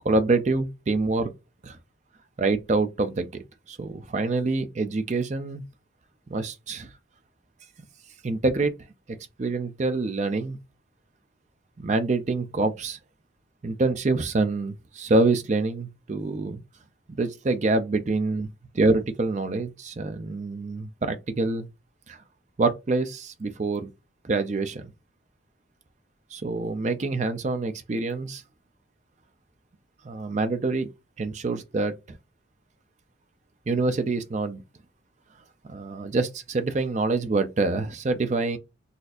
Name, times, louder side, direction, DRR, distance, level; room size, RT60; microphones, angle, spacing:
voice 1, 0.0-1.3 1.6-1.8 2.4-3.4 3.7-5.6 6.3-6.9 8.2-8.7 9.4-10.6 11.8-13.0 13.6-16.6 17.2-18.5 18.7-21.7 22.1-22.2 22.6-23.9 24.2-24.9 26.3-28.4 30.0-30.9 31.2-32.2 33.7-34.6 35.7-38.6, right 3 dB, 35° right, 0.4 m, -26 dB
4.1 x 2.6 x 2.4 m
head